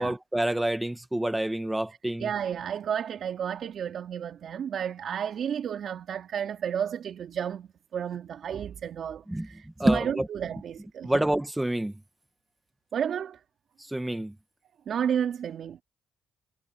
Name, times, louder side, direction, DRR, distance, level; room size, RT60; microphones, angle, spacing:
voice 1, 0.0-2.3 9.3-9.5 9.8-10.3 11.0-12.0 13.9-14.3, right 1 dB, 10° right, 1.7 m, -27 dB
voice 2, 2.2-11.2 12.9-13.4 14.9-15.8, right 8 dB, 60° right, 3.0 m, -32 dB
cardioid pair, 90°, 0 cm